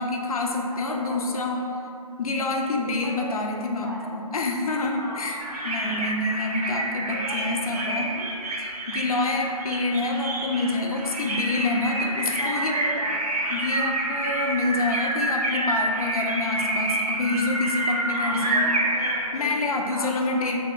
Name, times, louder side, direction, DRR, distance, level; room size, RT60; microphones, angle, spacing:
voice 1, 0.0-1.6 2.2-8.1 8.6-12.7 13.5-18.6 19.3-20.6, left 2 dB, 65° left, 1 dB, 0.4 m, -27 dB
voice 2, 0.7-1.7 2.8-4.1 5.0-5.4 7.1-8.3 12.4-13.2 18.2-19.6 19.9-20.5, right 1 dB, 35° right, -3 dB, 0.4 m, -37 dB
sound 1, 5.4-19.3, right 1 dB, 80° right, 0.6 m, -28 dB
3.2 x 2.8 x 2.3 m, 2.4 s
hypercardioid pair, 165°, 20 cm